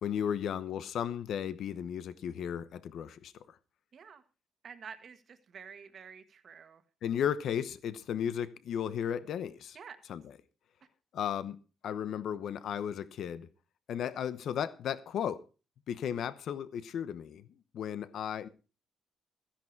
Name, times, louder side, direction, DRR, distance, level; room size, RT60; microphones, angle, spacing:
voice 1, 0.0-3.3 7.0-9.8 10.1-10.2 11.1-11.6 11.8-13.5 13.9-15.4 15.9-17.4 17.7-18.5, left 9 dB, 65° left, 0.9 m, -34 dB
voice 2, 3.9-4.2 4.6-6.8 9.7-10.0, right 6 dB, 45° right, 1.6 m, -49 dB
15.0 x 10.5 x 4.7 m
cardioid pair, 155°, 0 cm